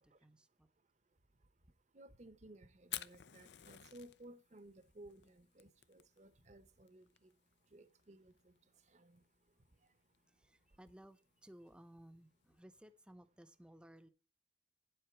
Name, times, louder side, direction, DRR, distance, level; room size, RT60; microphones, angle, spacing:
voice 1, 0.0-0.7 10.3-14.1, right 1 dB, 5° right, 0.7 m, -60 dB
voice 2, 0.8-10.8, right 1 dB, 40° right, 0.9 m, -60 dB
Fire, 2.8-12.6, left 13 dB, 80° left, 0.6 m, -54 dB
10.0 x 7.9 x 4.5 m
head